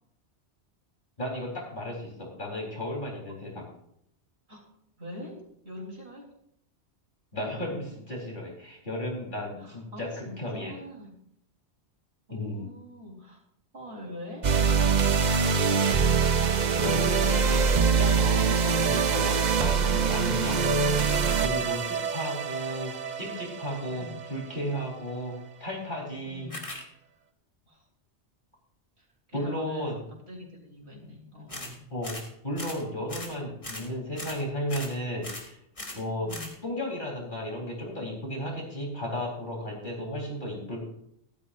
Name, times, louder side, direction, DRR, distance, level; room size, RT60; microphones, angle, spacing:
voice 1, 1.2-3.6 7.3-10.7 12.3-12.6 15.4-15.5 16.7-25.3 25.6-26.5 29.3-30.0 31.9-32.2 32.4-35.6 35.9-36.3 36.6-40.8, left 1 dB, 45° left, -2 dB, 4.0 m, -34 dB
voice 2, 5.0-5.4 5.6-6.3 9.6-11.1 12.3-13.4 13.7-14.5 23.9-24.2 26.2-26.6 27.7-27.8 29.0-31.8 36.2-36.5, left 1 dB, 65° right, -2 dB, 3.8 m, -44 dB
sound 1, 14.4-24.8, right 6 dB, 45° right, 0.8 m, -24 dB
sound 2, 26.5-26.8 31.5-31.8 32.0-32.3 32.6-32.8 33.1-33.3 33.6-33.9 34.1-34.4 34.7-34.9 35.2-35.5 35.8-36.0 36.3-36.6, left 1 dB, 30° left, 2.0 m, -39 dB
16.0 x 13.0 x 2.6 m, 0.74 s
omnidirectional pair, 1.1 m